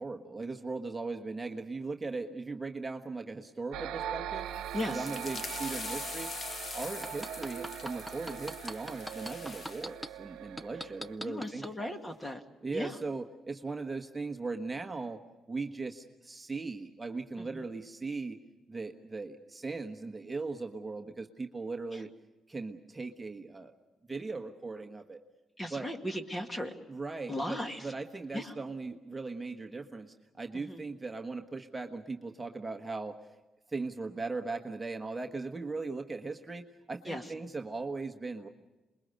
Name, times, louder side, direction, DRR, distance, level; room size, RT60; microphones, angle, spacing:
voice 1, 0.0-4.5 4.9-6.3 6.7-11.9 12.6-15.2 15.5-18.4 18.7-22.1 22.5-23.7 24.1-25.2 25.7-25.9 26.9-33.1 33.7-38.5, right 3 dB, 20° right, 4 dB, 1.4 m, -38 dB
sound 1, 3.7-11.2, right 10 dB, 90° right, 0.9 m, -41 dB
sound 2, 4.5-9.9, left 5 dB, 45° left, 0.8 m, -43 dB
voice 2, 4.7-5.1 11.2-12.4 12.7-12.9 17.4-17.6 21.9-22.0 25.6-26.7 27.3-27.8 28.3-28.5 30.5-30.8 37.1-37.2, left 1 dB, 20° left, 6 dB, 2.2 m, -37 dB
sound 3, 6.8-10.1 10.6-11.7 12.2-12.3, equal, ahead, 0.7 m, -40 dB
27.0 x 21.5 x 6.6 m, 1.1 s
cardioid pair, 90°, 0 cm